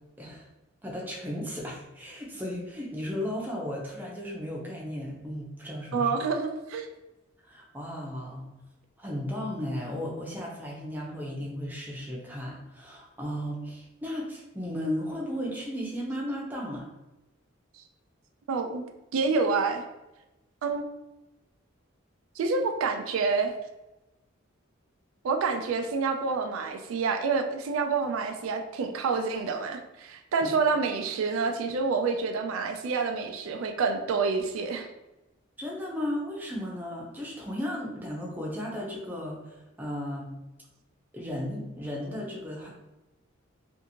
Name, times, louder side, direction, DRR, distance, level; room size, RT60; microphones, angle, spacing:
voice 1, 0.8-6.1 7.5-8.5 9.0-16.8 30.4-30.5 35.6-40.3 41.1-42.7, equal, 10° right, -3 dB, 0.5 m, -35 dB
voice 2, 5.9-6.9 18.5-18.8 19.1-19.8 20.6-20.8 22.4-23.5 25.2-34.9, right 4 dB, 90° right, 5 dB, 0.3 m, -28 dB
2.6 x 2.5 x 2.8 m, 1.0 s
head